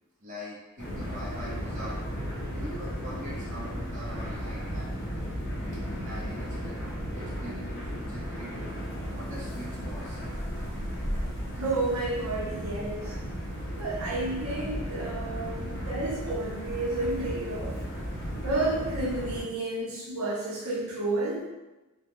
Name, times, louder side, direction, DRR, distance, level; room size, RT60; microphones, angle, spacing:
voice 1, 0.2-2.0 2.5-5.2 5.9-8.5 9.1-10.2, equal, 35° right, -7 dB, 0.6 m, -43 dB
sound 1, 0.8-19.4, equal, 50° left, 0.6 m, -35 dB
voice 2, 11.6-13.2 13.8-17.8 18.4-21.4, right 2 dB, 75° right, -5 dB, 0.7 m, -31 dB
2.1 x 2.1 x 2.9 m, 1.1 s
head